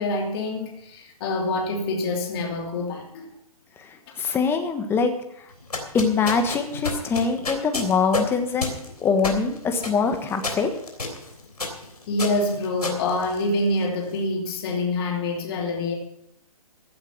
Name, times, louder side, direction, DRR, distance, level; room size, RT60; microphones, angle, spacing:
voice 1, 0.0-3.3 12.1-15.9, left 2 dB, 40° left, 1 dB, 2.9 m, -26 dB
voice 2, 4.2-5.1 5.9-8.7 9.0-10.7, left 5 dB, 10° left, 6 dB, 1.3 m, -23 dB
sound 1, 5.5-13.9, left 3 dB, 90° left, 3.4 m, -31 dB
15.5 x 8.8 x 6.2 m, 0.74 s
hypercardioid pair, 140°, 19 cm